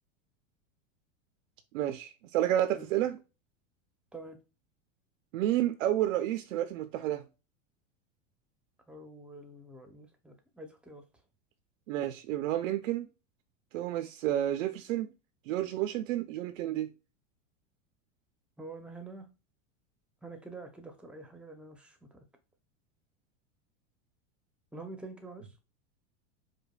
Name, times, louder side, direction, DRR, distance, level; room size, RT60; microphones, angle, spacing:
voice 1, 1.7-3.2 5.3-7.2 11.9-13.1 13.7-15.1 15.5-16.9, right 13 dB, 80° right, 0.5 m, -30 dB
voice 2, 8.9-11.0 18.6-19.3 20.2-22.0 24.7-25.5, right 2 dB, 5° right, 0.5 m, -46 dB
5.0 x 2.2 x 2.2 m
supercardioid pair, 120°, 38 cm